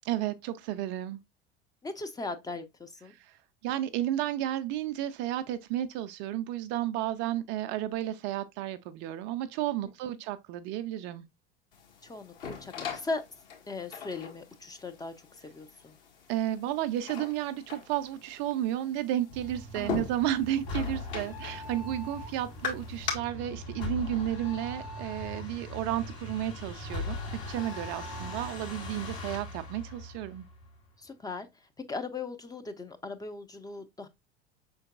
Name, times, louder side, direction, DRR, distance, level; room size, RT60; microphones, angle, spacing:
voice 1, 0.0-1.2 3.6-11.2 16.3-30.4, right 12 dB, 40° right, 0.4 m, -32 dB
voice 2, 1.8-3.1 9.8-10.2 12.0-13.2 13.7-15.1 15.4-16.0 19.7-20.0 31.0-31.5 31.9-34.1, left 3 dB, 10° left, 0.5 m, -38 dB
sound 1, 11.7-23.1, left 7 dB, 60° left, 1.8 m, -41 dB
sound 2, 19.3-30.8, left 2 dB, 80° left, 2.8 m, -40 dB
5.7 x 3.8 x 2.3 m
figure-of-eight pair, 75°, 32 cm